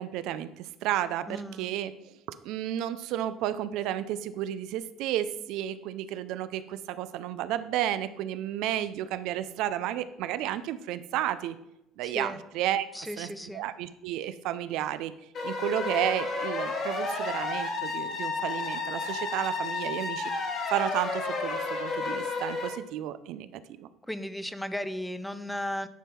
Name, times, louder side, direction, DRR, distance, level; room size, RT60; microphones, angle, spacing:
voice 1, 0.0-2.1 2.4-11.6 12.0-12.9 13.2-13.3 13.5-15.1 15.4-20.3 20.7-23.9, right 12 dB, 75° right, 13 dB, 0.4 m, -32 dB
voice 2, 1.3-1.7 12.0-12.4 12.9-13.6 24.1-25.9, equal, 5° left, 12 dB, 0.5 m, -35 dB
sound 1, 15.3-22.7, left 3 dB, 45° left, 1.7 m, -32 dB
10.0 x 3.7 x 4.3 m, 0.86 s
cardioid pair, 110°, 0 cm